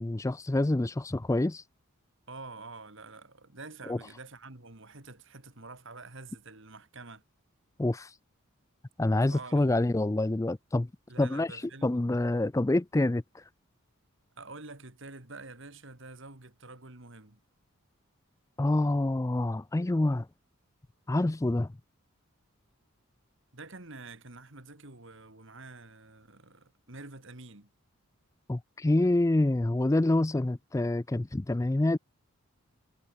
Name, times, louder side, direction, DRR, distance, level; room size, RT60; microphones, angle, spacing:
voice 1, 0.0-1.6 3.9-4.0 7.8-8.1 9.0-10.9 11.2-13.4 18.6-20.3 21.1-21.7 28.5-32.0, left 2 dB, 15° left, 0.4 m, -27 dB
voice 2, 2.3-7.2 9.3-9.8 11.1-12.0 14.4-17.4 23.5-27.7, right 3 dB, 60° right, 2.6 m, -47 dB
head